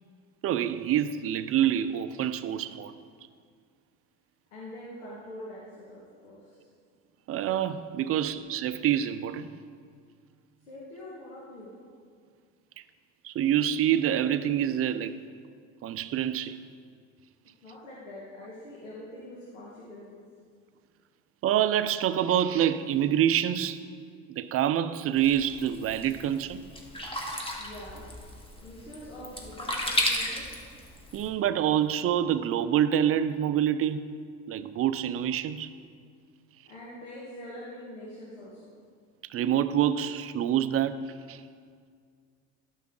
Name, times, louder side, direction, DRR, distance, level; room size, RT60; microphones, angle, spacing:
voice 1, 0.4-2.9 7.3-9.5 13.2-15.2 15.8-16.6 21.4-23.8 24.3-26.6 31.1-34.0 34.5-35.7 39.3-41.4, right 10 dB, 40° right, 13 dB, 0.5 m, -26 dB
voice 2, 4.5-6.7 10.7-11.7 17.6-20.2 27.6-28.0 28.6-30.5 36.7-38.7, left 1 dB, 90° left, -6 dB, 1.7 m, -44 dB
Sink (filling or washing), 25.2-31.3, left 1 dB, 15° left, 1.4 m, -34 dB
12.0 x 5.7 x 3.7 m, 2.1 s
hypercardioid pair, 75°, 36 cm